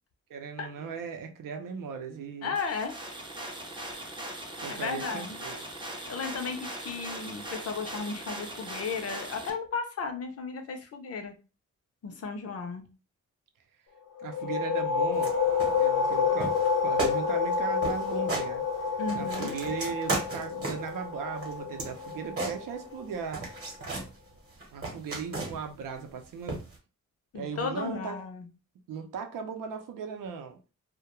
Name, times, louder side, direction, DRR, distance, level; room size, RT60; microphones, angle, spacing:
voice 1, 0.3-2.5 4.6-5.6 14.2-15.4 15.8-18.6 19.1-23.5 24.7-26.6 27.3-28.2 28.9-30.6, right 6 dB, 85° right, 0.6 m, -37 dB
voice 2, 2.4-3.0 4.7-5.4 6.1-11.3 12.0-12.8 19.0-19.5 27.3-28.5, left 5 dB, 50° left, 0.5 m, -34 dB
sound 1, 2.5-9.5, right 1 dB, 15° right, 0.4 m, -40 dB
sound 2, 14.2-23.6, left 5 dB, 90° left, 0.7 m, -29 dB
sound 3, 15.1-15.3 15.6-16.1 16.4-16.7 17.0-17.2 17.5-17.6 17.8-18.5 18.9-20.9 21.4-23.0 23.3-24.1 24.5-25.7 26.5-26.8, right 2 dB, 45° right, 0.9 m, -35 dB
2.3 x 2.1 x 2.9 m
wide cardioid pair, 155°, 32 cm